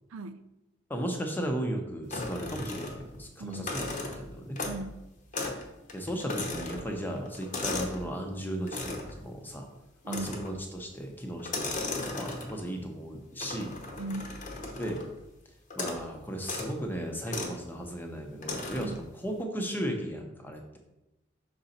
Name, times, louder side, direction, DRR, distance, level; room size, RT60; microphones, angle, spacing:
voice 1, 0.1-0.4 3.4-3.7 4.6-5.0 10.0-10.3 14.0-14.4 18.8-19.0, right 2 dB, 80° right, 11 dB, 0.4 m, -37 dB
voice 2, 0.9-4.6 5.9-9.7 10.0-13.8 14.7-15.1 15.7-20.8, equal, 10° left, 3 dB, 0.6 m, -36 dB
sound 1, 2.1-3.2 3.5-4.9 5.3-5.6 5.9-8.0 8.7-9.2 10.1-10.6 11.4-12.7 13.4-15.1 15.7-16.1 16.4-16.7 17.3-17.6 18.4-19.0, left 3 dB, 40° left, 0.8 m, -36 dB
6.1 x 3.9 x 4.2 m, 0.94 s
head